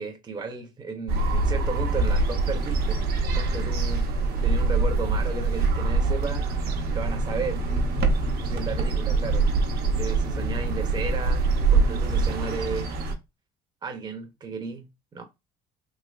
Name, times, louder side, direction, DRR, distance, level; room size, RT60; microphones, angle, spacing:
voice 1, 0.0-3.0 3.4-4.1 4.4-6.5 6.9-7.6 8.4-9.5 10.0-11.4 11.7-12.9 13.8-15.2, right 4 dB, 25° right, 0.6 m, -34 dB
sound 1, 1.1-13.1, right 3 dB, 70° right, 0.7 m, -24 dB
3.2 x 2.9 x 2.3 m
cardioid pair, 110°, 17 cm